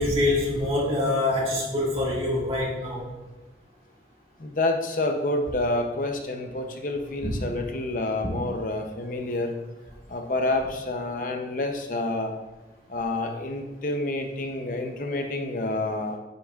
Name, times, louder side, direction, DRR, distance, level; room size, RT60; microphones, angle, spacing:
voice 1, 0.0-3.1 7.2-7.3, left 2 dB, 30° right, -4 dB, 1.8 m, -25 dB
voice 2, 4.4-9.6 10.1-12.3 12.9-16.2, left 2 dB, 50° left, 4 dB, 0.6 m, -28 dB
9.5 x 6.9 x 2.4 m, 1.2 s
head